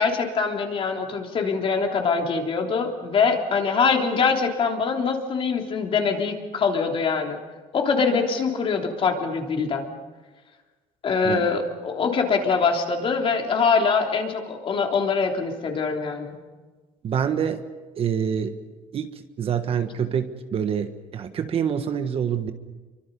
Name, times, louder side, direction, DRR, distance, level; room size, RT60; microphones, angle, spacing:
voice 1, 0.0-7.4 7.7-9.9 11.0-16.4, left 5 dB, 40° left, 2 dB, 3.3 m, -23 dB
voice 2, 17.0-17.6 18.0-18.5 18.9-19.1 19.4-22.5, right 8 dB, 40° right, 8 dB, 1.4 m, -26 dB
28.5 x 24.0 x 5.5 m, 1.3 s
cardioid pair, 150°, 14 cm